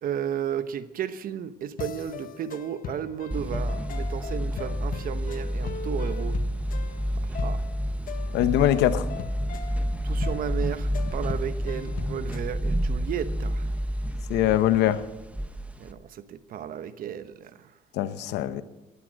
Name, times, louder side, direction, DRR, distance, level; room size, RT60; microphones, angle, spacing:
voice 1, 0.0-6.4 7.2-7.6 10.0-13.7 15.8-17.7, right 9 dB, 55° right, 1.1 m, -34 dB
sound 1, 1.8-12.5, left 7 dB, 55° left, 1.4 m, -40 dB
sound 2, 3.3-15.9, equal, 10° right, 1.1 m, -29 dB
voice 2, 8.3-9.1 14.3-15.0 18.0-18.6, left 12 dB, 85° left, 1.0 m, -22 dB
18.0 x 11.5 x 6.4 m
cardioid pair, 110°, 17 cm